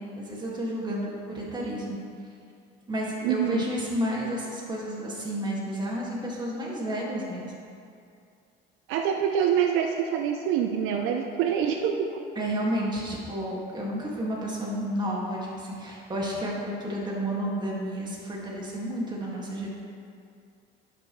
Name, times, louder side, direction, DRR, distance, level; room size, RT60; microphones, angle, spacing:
voice 1, 0.0-2.0 2.9-7.5 12.4-19.7, equal, 20° right, -4 dB, 1.9 m, -31 dB
voice 2, 3.2-3.6 8.9-12.1, right 8 dB, 75° right, 4 dB, 0.6 m, -25 dB
11.0 x 6.0 x 3.1 m, 2.4 s
cardioid pair, 110°, 21 cm